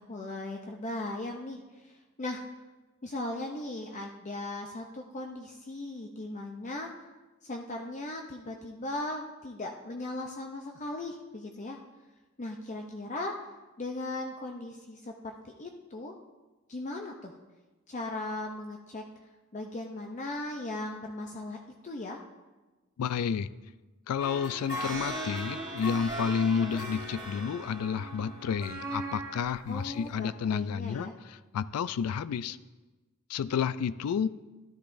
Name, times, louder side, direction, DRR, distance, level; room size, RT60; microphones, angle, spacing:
voice 1, 0.0-2.4 3.0-6.9 7.4-11.8 12.4-13.3 13.8-16.1 16.7-17.4 17.9-19.0 19.5-21.6 21.8-22.2 29.7-31.2, left 2 dB, 35° left, 2 dB, 0.6 m, -38 dB
voice 2, 23.0-23.5 24.1-32.6 33.3-34.3, left 7 dB, 90° left, 16 dB, 0.3 m, -30 dB
sound 1, 24.2-29.5 30.0-30.1, right 1 dB, 20° right, 2.6 m, -38 dB
13.5 x 11.5 x 2.6 m, 1.2 s
head